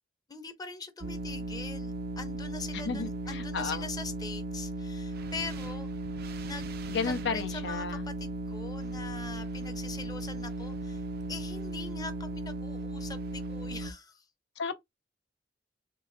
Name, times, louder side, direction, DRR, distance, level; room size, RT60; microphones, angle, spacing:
voice 1, 0.3-5.9 6.4-6.8 7.0-11.0 11.3-14.2, left 4 dB, 20° left, 0.8 m, -42 dB
sound 1, 1.0-13.9, right 2 dB, 55° right, 0.5 m, -36 dB
voice 2, 2.9-3.9 6.9-8.1 14.6-14.7, left 5 dB, 65° left, 0.6 m, -33 dB
3.8 x 2.5 x 3.9 m
head